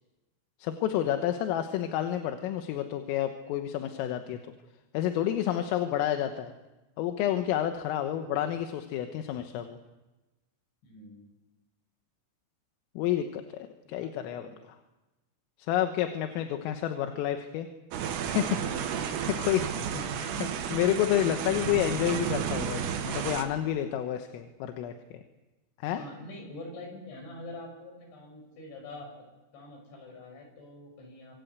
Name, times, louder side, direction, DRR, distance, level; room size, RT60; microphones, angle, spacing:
voice 1, 0.6-4.4 4.9-6.5 7.0-9.8 13.0-14.8 15.6-17.7 18.3-19.9 20.7-25.2 25.8-26.0, left 11 dB, 85° left, 6 dB, 3.8 m, -30 dB
voice 2, 10.8-11.2 13.8-14.6 19.8-20.4 25.9-29.2 29.5-31.3, left 1 dB, 65° left, 3 dB, 8.4 m, -45 dB
sound 1, 17.9-23.4, right 8 dB, 90° right, 4.4 m, -32 dB
25.5 x 21.5 x 8.1 m, 1.1 s
omnidirectional pair, 5.8 m